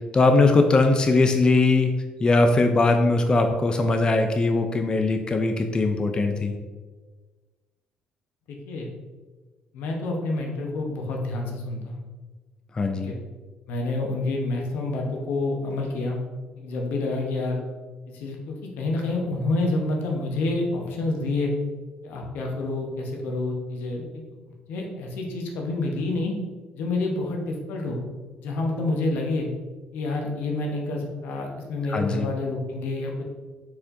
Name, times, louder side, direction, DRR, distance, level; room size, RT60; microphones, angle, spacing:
voice 1, 0.1-1.9 2.2-6.6 12.7-13.1 31.9-32.3, left 3 dB, 25° left, 5 dB, 0.4 m, -20 dB
voice 2, 8.5-8.9 9.7-12.0 12.9-13.2 13.7-16.2 16.6-17.6 18.1-21.5 22.0-24.2 24.7-26.3 26.7-28.0 28.4-29.5 29.9-33.2, left 2 dB, 80° left, 0 dB, 0.9 m, -28 dB
4.3 x 4.2 x 2.6 m, 1.3 s
cardioid pair, 90°, 3 cm